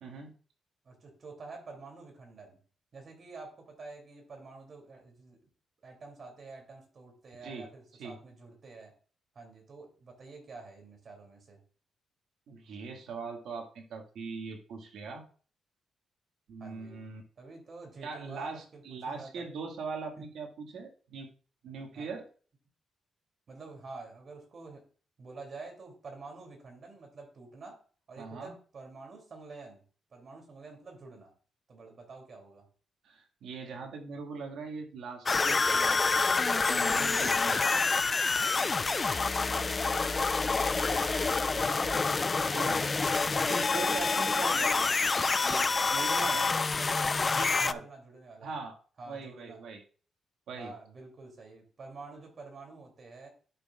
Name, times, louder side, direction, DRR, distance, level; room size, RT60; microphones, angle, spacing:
voice 1, 0.0-0.3 7.4-7.7 8.0-8.2 12.5-15.2 16.5-17.2 18.0-21.3 21.6-22.2 28.2-28.6 33.0-36.3 36.7-37.6 42.5-42.8 43.4-45.1 45.4-46.5 47.4-47.8 48.4-48.8 49.1-49.8 50.5-50.7, right 4 dB, 80° right, 3 dB, 1.8 m, -41 dB
voice 2, 0.8-2.6 2.9-5.5 5.8-8.9 9.3-11.6 16.6-17.0 17.4-19.5 20.2-20.3 21.9-22.1 23.5-24.9 25.2-27.8 28.1-29.8 30.1-31.3 31.7-32.7 37.5-37.9 38.7-40.4 40.7-42.1 46.2-48.5 49.0-49.6 50.6-53.3, right 3 dB, 45° right, 2 dB, 2.8 m, -48 dB
sound 1, 35.3-47.7, left 4 dB, 30° left, 0.3 m, -27 dB
11.5 x 6.3 x 2.4 m, 0.40 s
cardioid pair, 115°, 0 cm